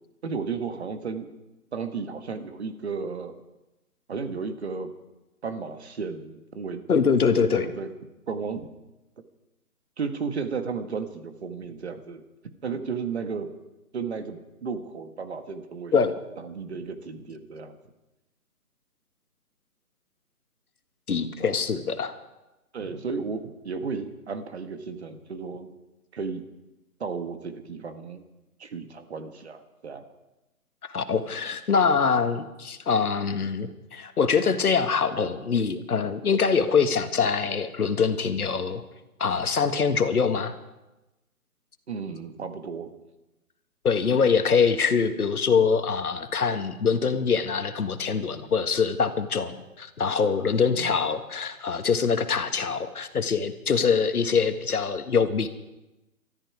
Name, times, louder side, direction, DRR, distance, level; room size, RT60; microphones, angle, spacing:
voice 1, 0.2-1.3 1.7-3.3 4.1-4.9 5.4-6.8 7.5-7.9 8.3-8.7 10.0-12.2 12.6-13.5 13.9-16.0 16.4-17.8 22.7-25.7 26.1-26.4 27.0-28.2 28.6-30.1 41.9-42.9 50.7-51.0, right 5 dB, 45° right, 8 dB, 1.6 m, -33 dB
voice 2, 6.9-7.7 15.9-16.1 21.1-22.1 30.9-38.8 39.2-40.5 43.8-55.5, left 5 dB, 75° left, 9 dB, 1.7 m, -24 dB
20.5 x 13.5 x 4.8 m, 1.0 s
hypercardioid pair, 170°, 45 cm